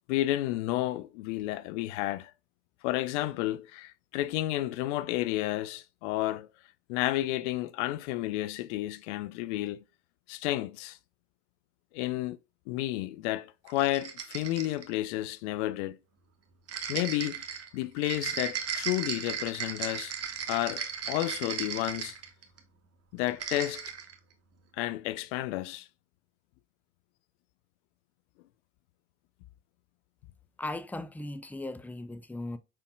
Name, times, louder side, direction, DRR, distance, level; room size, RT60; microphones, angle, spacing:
voice 1, 0.1-2.3 2.8-6.5 6.9-9.8 10.3-11.0 11.9-12.4 12.7-16.0 16.9-17.5 17.7-20.1 20.5-22.2 23.1-23.8 24.7-25.9, left 16 dB, 80° left, 0.5 m, -31 dB
sound 1, 13.7-14.9 16.7-22.6 23.2-24.1, right 7 dB, 45° right, 1.2 m, -36 dB
voice 2, 30.6-32.6, left 2 dB, 5° left, 0.5 m, -37 dB
5.1 x 4.5 x 2.2 m
hypercardioid pair, 60°, 35 cm